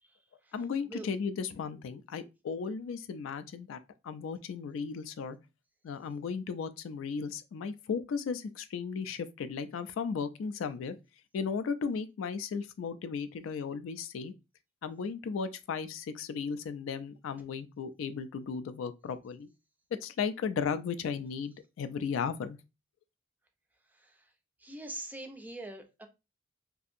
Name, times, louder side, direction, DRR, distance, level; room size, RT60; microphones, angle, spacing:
voice 1, 0.0-0.5 0.9-1.1 23.9-24.3 24.6-26.1, right 1 dB, 10° right, 0.3 m, -44 dB
voice 2, 0.5-5.4 5.8-11.0 11.3-14.3 14.8-19.5 19.9-22.6, left 6 dB, 70° left, 0.3 m, -35 dB
2.7 x 2.4 x 2.5 m
head